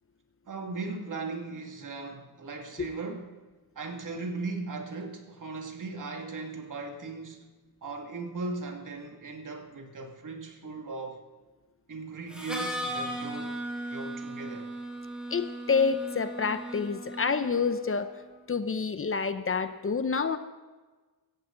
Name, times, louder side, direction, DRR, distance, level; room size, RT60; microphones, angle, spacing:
voice 1, 0.5-3.4 3.8-7.5 7.8-11.2 11.9-13.6 13.9-14.7, right 3 dB, 55° right, 2.3 m, -38 dB
Harmonica, 12.3-18.0, right 1 dB, 5° right, 3.1 m, -37 dB
voice 2, 15.3-18.1 18.5-20.4, left 5 dB, 35° left, 0.8 m, -28 dB
17.0 x 14.5 x 3.9 m
wide cardioid pair, 105°, 37 cm